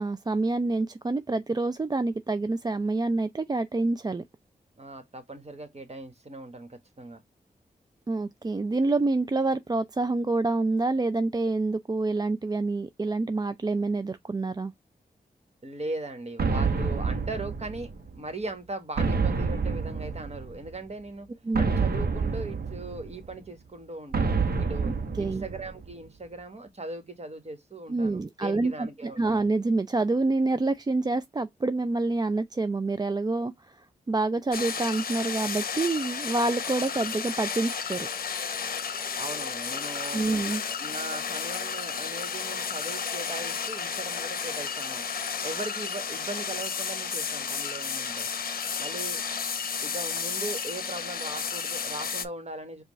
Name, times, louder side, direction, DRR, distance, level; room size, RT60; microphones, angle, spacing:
voice 1, 0.0-4.2 8.1-14.7 21.5-21.7 25.2-25.4 27.9-38.1 40.1-40.6, right 3 dB, 25° right, 0.4 m, -27 dB
voice 2, 4.8-7.2 15.6-21.3 21.5-24.9 25.2-29.3 39.1-40.2 40.8-45.1 45.4-48.3 48.8-49.2 49.8-52.8, right 2 dB, 40° right, 1.5 m, -39 dB
sound 1, 16.4-18.2 19.0-20.7 21.5-23.3 24.1-25.9, right 4 dB, 65° right, 0.9 m, -28 dB
sound 2, 34.5-52.3, left 6 dB, 60° left, 0.7 m, -32 dB
5.1 x 2.4 x 3.1 m
cardioid pair, 40°, 17 cm